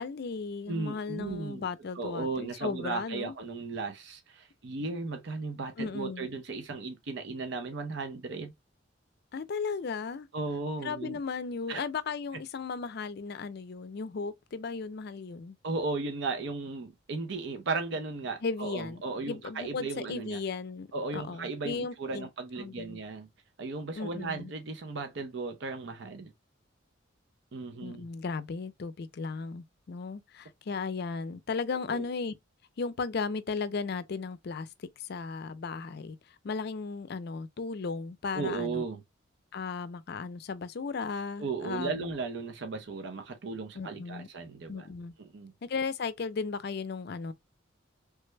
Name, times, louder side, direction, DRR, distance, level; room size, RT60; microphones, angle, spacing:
voice 1, 0.0-3.4 5.8-6.3 9.3-10.3 10.8-15.6 18.4-19.0 19.3-20.9 21.1-22.3 22.6-23.0 24.0-24.5 27.8-32.3 32.8-36.2 36.4-38.8 39.5-42.1 43.7-44.3 44.7-45.1 45.6-47.3, left 4 dB, 55° left, 0.4 m, -35 dB
voice 2, 0.7-1.7 1.9-8.5 10.3-11.2 11.7-11.8 15.6-20.4 20.9-23.3 23.6-26.3 27.5-28.1 31.9-32.0 38.3-39.0 41.4-44.9 45.3-45.5, right 3 dB, 65° right, 0.6 m, -36 dB
3.3 x 2.1 x 3.2 m
head